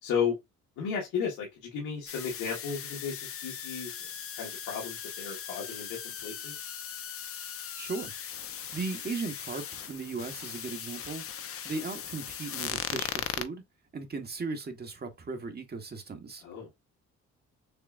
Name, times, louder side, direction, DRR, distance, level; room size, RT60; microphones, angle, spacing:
voice 1, 0.0-0.4 0.8-4.1 4.4-6.5 16.4-16.7, left 6 dB, 85° left, 1.6 m, -34 dB
sound 1, 2.1-13.5, left 9 dB, 50° left, 0.7 m, -39 dB
voice 2, 7.8-8.1 8.7-11.2 11.6-13.6 13.9-16.4, right 4 dB, 35° right, 1.3 m, -37 dB
6.6 x 2.4 x 2.5 m
cardioid pair, 75°, 29 cm